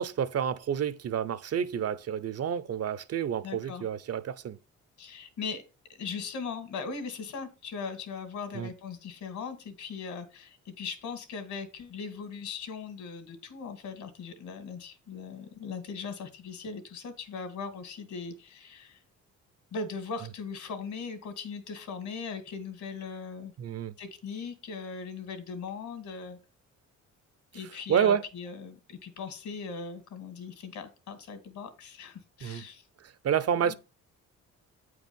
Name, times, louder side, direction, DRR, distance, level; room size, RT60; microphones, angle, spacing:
voice 1, 0.0-4.6 8.5-8.7 23.6-23.9 27.9-28.3 32.4-32.7 33.0-33.7, right 8 dB, 55° right, 0.8 m, -29 dB
voice 2, 3.4-3.8 5.0-5.6 5.9-19.0 19.7-23.5 24.0-26.4 27.5-32.8 33.6-33.7, left 5 dB, 70° left, 2.3 m, -39 dB
8.8 x 4.8 x 5.4 m
cardioid pair, 90°, 30 cm